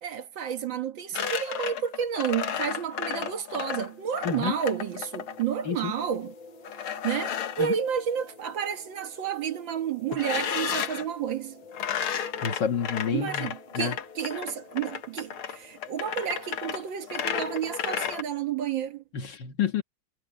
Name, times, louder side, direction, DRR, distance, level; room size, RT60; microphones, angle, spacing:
voice 1, 0.0-6.3 7.0-11.6 13.1-19.0, right 8 dB, 65° right, 2.0 m, -31 dB
sound 1, 1.1-5.4 6.6-7.8 10.1-11.1 11.7-18.2, left 8 dB, 85° left, 2.2 m, -33 dB
sound 2, 3.4-17.7, left 3 dB, 20° left, 3.7 m, -52 dB
voice 2, 12.4-14.0 19.1-19.8, left 7 dB, 60° left, 2.0 m, -29 dB
omnidirectional pair, 2.3 m